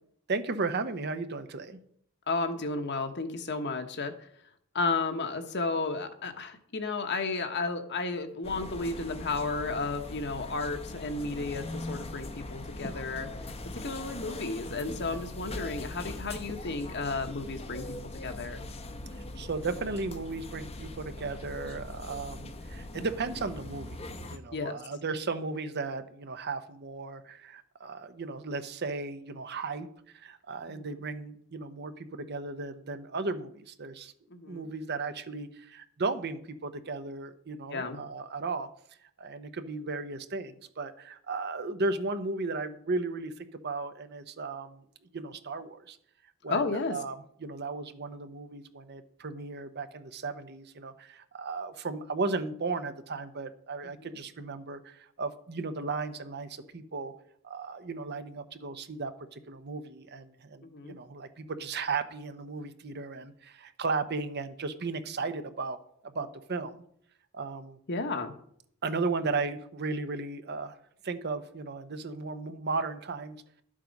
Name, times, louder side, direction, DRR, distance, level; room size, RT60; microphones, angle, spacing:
voice 1, 0.3-1.8 19.1-24.0 24.3-34.1 34.5-38.7 39.0-44.8 45.1-46.0 46.4-57.1 57.4-65.8 66.0-66.8 67.3-67.8 68.8-70.8 71.0-73.4, right 3 dB, 50° right, 10 dB, 0.8 m, -35 dB
voice 2, 2.3-4.3 4.7-13.3 13.7-17.9 18.2-18.6 24.5-24.8 30.7-30.9 34.3-34.7 37.7-38.0 46.5-47.0 54.0-54.1 60.6-61.0 67.9-68.3, left 3 dB, 50° left, 7 dB, 1.2 m, -33 dB
sound 1, 8.4-24.4, left 2 dB, 30° left, 0.8 m, -41 dB
12.0 x 7.5 x 5.3 m, 0.67 s
head